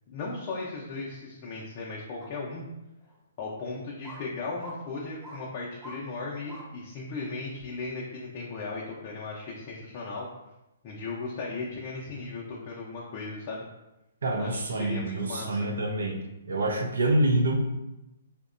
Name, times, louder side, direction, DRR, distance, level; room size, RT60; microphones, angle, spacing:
voice 1, 0.1-2.6 3.4-10.3 10.8-13.6 14.4-15.6, left 3 dB, 40° left, -5 dB, 0.5 m, -37 dB
sound 1, 2.2-2.3 3.0-3.1 4.0-4.2 4.6-4.8 5.2-5.4 5.8-6.0 6.5-6.7 7.2-7.3, equal, 20° right, 0.6 m, -44 dB
voice 2, 14.2-16.2 16.5-17.7, right 1 dB, 80° right, 3 dB, 0.4 m, -26 dB
2.7 x 2.1 x 2.4 m, 0.94 s
hypercardioid pair, 135°, 0 cm